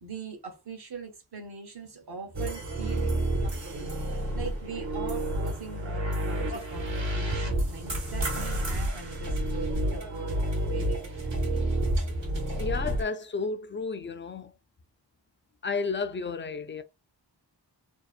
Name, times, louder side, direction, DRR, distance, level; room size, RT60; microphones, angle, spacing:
voice 1, 0.0-3.9 4.3-11.6 11.9-12.1, right 3 dB, 60° right, 0.9 m, -41 dB
sound 1, 2.3-13.0, right 1 dB, 75° right, 1.1 m, -30 dB
voice 2, 12.6-14.5 15.6-16.8, left 4 dB, 30° left, 0.3 m, -32 dB
2.8 x 2.0 x 2.4 m
wide cardioid pair, 50°, 44 cm